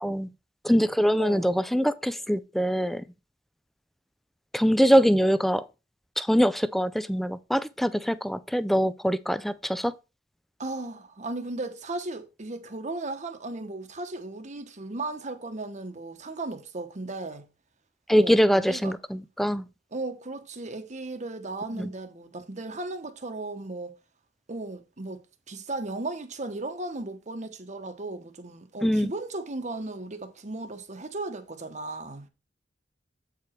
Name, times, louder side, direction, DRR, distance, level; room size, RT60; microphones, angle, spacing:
voice 1, 0.6-3.0 4.5-5.6 6.2-9.9 18.1-19.6 21.8-21.9 28.8-29.1, equal, ahead, 0.4 m, -23 dB
voice 2, 1.2-1.5 10.6-17.5 18.1-18.9 19.9-24.0 24.5-32.3, right 2 dB, 40° right, 1.1 m, -36 dB
8.3 x 4.9 x 4.4 m
head